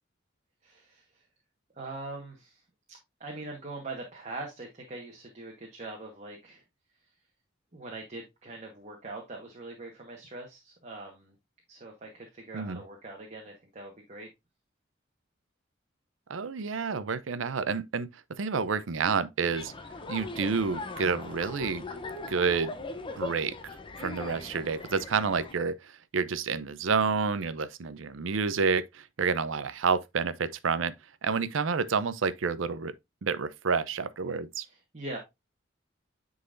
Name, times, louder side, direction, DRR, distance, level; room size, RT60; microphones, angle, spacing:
voice 1, 0.6-1.2 1.7-2.6 2.9-6.6 7.7-11.3 11.7-14.3 34.6-35.2, right 2 dB, 35° right, 1.2 m, -42 dB
voice 2, 16.3-18.1 18.4-19.7 20.1-21.8 22.3-22.7 23.1-30.9 31.2-32.9 33.2-34.6, right 5 dB, 80° right, 0.6 m, -29 dB
sound 1, 19.4-25.5, left 3 dB, 25° left, 0.6 m, -40 dB
9.6 x 4.0 x 2.5 m
head